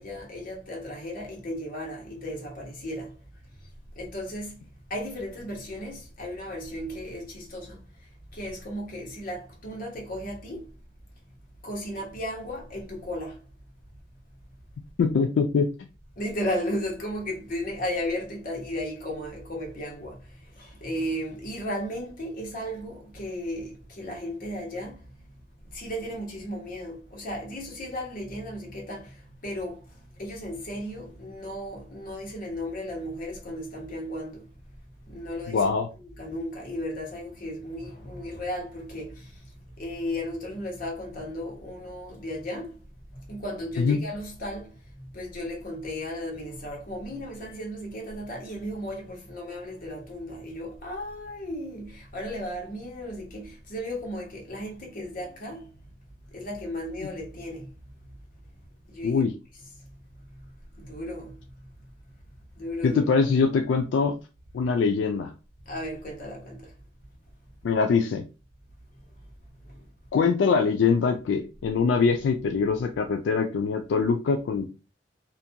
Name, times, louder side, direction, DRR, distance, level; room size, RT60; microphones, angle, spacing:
voice 1, 0.0-3.1 4.0-7.8 8.3-10.7 11.6-13.4 16.2-25.0 25.7-34.5 35.1-35.6 36.0-39.5 39.8-42.7 43.1-55.7 56.3-57.7 58.9-59.2 59.8-59.9 60.3-60.5 60.8-61.4 62.5-63.0 65.6-66.7 69.6-69.8, equal, 50° left, 1.0 m, -35 dB
voice 2, 15.0-15.9 35.5-35.9 43.8-44.0 59.0-59.3 62.8-64.2 64.5-65.3 67.6-68.3 70.1-74.7, left 5 dB, 80° left, 0.3 m, -23 dB
2.5 x 2.2 x 2.7 m
head